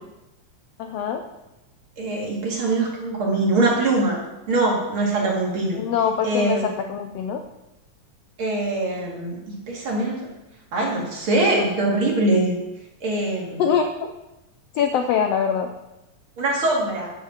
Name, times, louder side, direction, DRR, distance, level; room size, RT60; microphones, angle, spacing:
voice 1, 0.8-1.2 5.8-7.4 13.6-14.1 14.7-15.7, left 7 dB, 75° left, 6 dB, 1.5 m, -23 dB
voice 2, 2.0-5.8 6.2-6.6 8.4-10.2 10.7-12.6 13.0-13.6 16.4-17.1, right 2 dB, 45° right, -2 dB, 2.7 m, -23 dB
8.2 x 7.4 x 7.2 m, 0.97 s
omnidirectional pair, 3.5 m